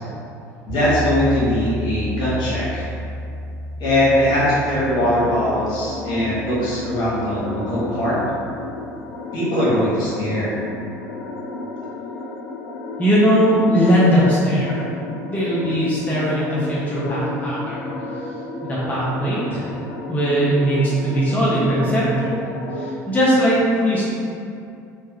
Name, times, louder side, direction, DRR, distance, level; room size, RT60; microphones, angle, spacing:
voice 1, 0.6-2.9 3.8-8.2 9.3-10.6, left 1 dB, 55° left, -8 dB, 1.3 m, -21 dB
sound 1, 0.7-8.8, equal, 60° right, 1.2 m, -32 dB
sound 2, 4.3-22.9, left 2 dB, 70° left, 0.4 m, -33 dB
voice 2, 13.0-14.9 15.3-17.8 18.6-19.7 20.1-22.3 22.7-24.0, equal, 15° left, -8 dB, 0.7 m, -19 dB
3.1 x 2.3 x 2.8 m, 2.5 s
hypercardioid pair, 70°, 9 cm